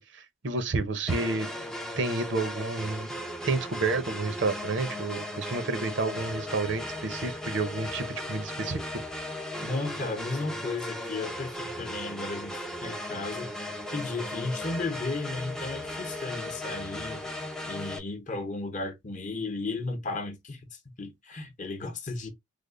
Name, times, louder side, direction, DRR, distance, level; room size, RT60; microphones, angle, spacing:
voice 1, 0.0-1.5 2.0-3.1 3.5-8.8, right 3 dB, 60° right, 0.7 m, -30 dB
sound 1, 1.1-18.0, left 1 dB, 5° left, 0.4 m, -37 dB
voice 2, 9.6-13.5 13.9-17.2 17.7-20.6 21.0-22.3, left 3 dB, 35° left, 0.7 m, -34 dB
3.4 x 2.1 x 3.7 m
head